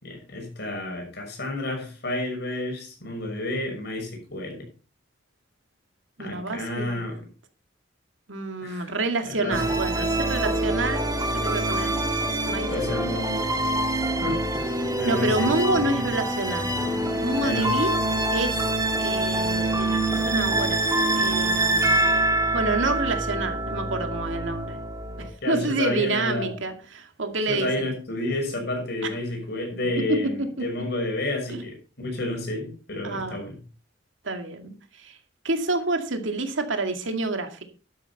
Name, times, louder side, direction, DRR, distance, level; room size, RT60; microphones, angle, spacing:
voice 1, 0.0-4.7 6.2-7.2 8.6-8.9 9.3-9.6 12.7-13.5 14.2-14.7 15.0-15.5 17.4-17.9 25.4-26.5 27.5-33.6, left 1 dB, 60° left, 2 dB, 6.2 m, -30 dB
voice 2, 6.2-7.1 8.3-11.0 11.3-11.9 12.4-13.1 15.0-16.7 17.2-17.9 18.3-18.6 19.0-22.1 22.5-24.8 25.5-27.7 30.1-30.2 30.6-30.7 31.5-31.6 33.0-33.4 34.2-34.7 35.0-35.2 35.4-37.6, right 2 dB, 85° right, 6 dB, 2.2 m, -28 dB
sound 1, 9.5-25.3, right 1 dB, 20° right, 2.2 m, -25 dB
12.0 x 10.5 x 4.2 m, 0.36 s
head